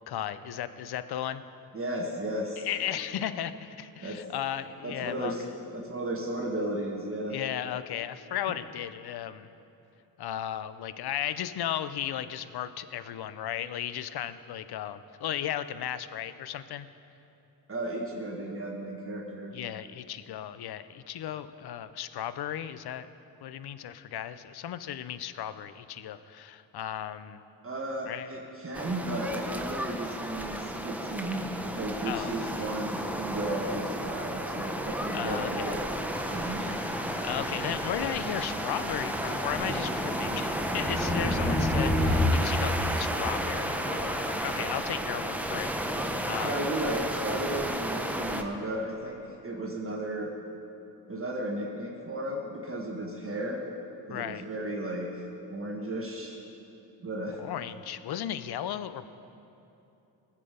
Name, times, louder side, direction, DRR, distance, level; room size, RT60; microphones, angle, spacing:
voice 1, 0.1-1.4 2.6-5.3 7.3-9.5 10.2-16.9 19.5-23.1 23.4-27.4 28.1-28.3 32.0-32.3 35.1-35.8 37.2-46.7 54.1-54.4 57.4-59.1, left 10 dB, 65° left, 13 dB, 0.6 m, -35 dB
voice 2, 1.7-2.7 4.0-4.2 4.8-5.4 5.7-7.4 17.7-19.5 27.6-35.8 36.1-37.1 46.4-49.2 49.4-50.3 51.1-53.6 54.1-55.2 55.5-56.4 57.0-57.4, right 1 dB, 30° right, -2 dB, 1.5 m, -34 dB
sound 1, 28.7-48.4, right 1 dB, 5° right, 0.8 m, -32 dB
sound 2, 36.1-42.3, left 2 dB, 15° left, 1.1 m, -32 dB
19.5 x 7.5 x 5.1 m, 2.8 s
cardioid pair, 95°, 41 cm